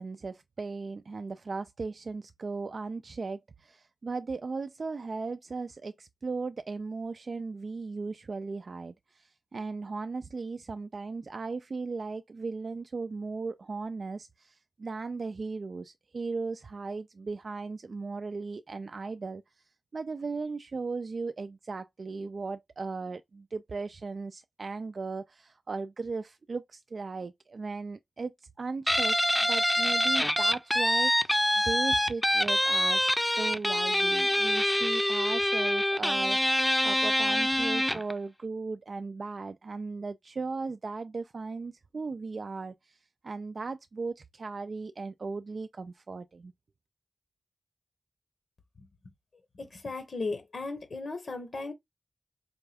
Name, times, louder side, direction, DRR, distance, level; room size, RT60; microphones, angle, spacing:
voice 1, 0.0-19.4 19.9-43.0 43.2-46.5, right 4 dB, 70° right, 0.3 m, -37 dB
Guitar, 28.9-38.1, left 1 dB, 10° left, 0.5 m, -25 dB
voice 2, 49.5-51.7, left 3 dB, 75° left, 0.9 m, -36 dB
4.2 x 2.3 x 3.4 m
cardioid pair, 50°, 0 cm